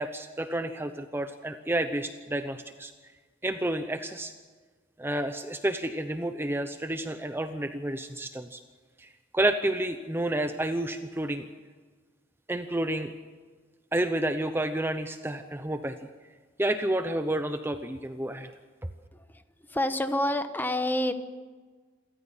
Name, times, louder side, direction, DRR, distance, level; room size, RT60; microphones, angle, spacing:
voice 1, 0.0-2.9 3.4-4.3 5.0-8.6 9.0-11.4 12.5-13.1 13.9-16.0 16.6-18.5, right 1 dB, 10° right, 8 dB, 0.8 m, -30 dB
voice 2, 19.1-19.4 19.7-21.1, left 1 dB, 10° left, 9 dB, 1.1 m, -28 dB
27.5 x 14.0 x 7.4 m, 1.4 s
head